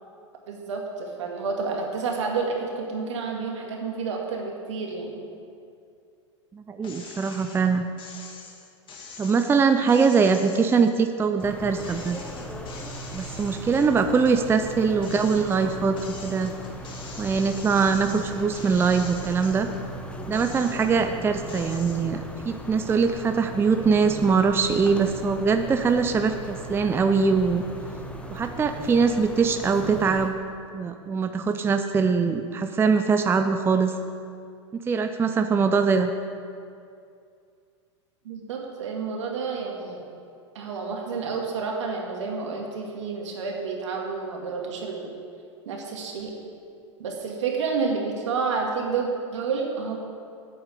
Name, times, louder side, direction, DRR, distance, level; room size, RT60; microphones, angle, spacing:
voice 1, 0.5-5.2 15.0-15.1 38.2-40.0 40.5-45.1 45.7-46.3 47.0-50.0, right 4 dB, 70° right, 0 dB, 2.2 m, -30 dB
voice 2, 6.5-7.9 9.2-12.2 13.1-16.0 16.2-16.5 17.2-19.7 20.3-27.6 28.3-30.4 30.7-34.0 34.7-36.1, right 5 dB, 15° right, 7 dB, 0.5 m, -22 dB
sound 1, 6.8-7.6 8.0-11.4 11.8-14.4 14.8-19.8 20.2-21.1 21.5-22.0, left 4 dB, 30° left, 2.0 m, -44 dB
sound 2, 11.4-30.3, equal, 5° left, 1.0 m, -38 dB
9.0 x 7.0 x 8.3 m, 2.4 s
hypercardioid pair, 100°, 16 cm